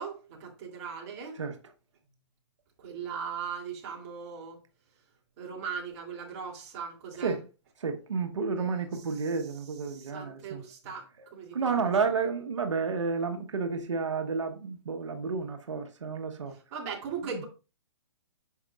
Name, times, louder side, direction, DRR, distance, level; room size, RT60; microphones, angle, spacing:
voice 1, 0.0-1.4 2.8-4.6 5.4-7.4 8.6-9.3 9.9-12.1 16.7-17.4, right 6 dB, 35° right, 2.8 m, -39 dB
voice 2, 7.8-10.6 11.5-16.5 17.3-17.4, right 5 dB, 90° right, 1.2 m, -31 dB
9.6 x 6.5 x 2.4 m
hypercardioid pair, 155°, 15 cm